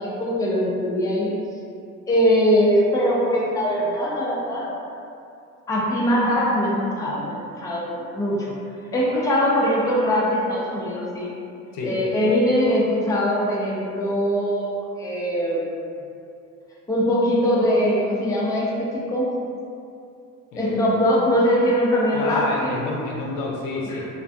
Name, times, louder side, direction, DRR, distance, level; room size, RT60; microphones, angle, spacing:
voice 1, 0.0-1.3 2.1-4.7 5.7-8.6 8.9-11.3 11.8-15.8 16.9-19.3 20.6-22.8 23.9-24.0, equal, 10° left, -5 dB, 0.4 m, -22 dB
voice 2, 20.5-20.9 22.1-24.1, left 3 dB, 75° left, -2 dB, 0.6 m, -29 dB
2.5 x 2.4 x 2.3 m, 2.5 s
supercardioid pair, 90°, 34 cm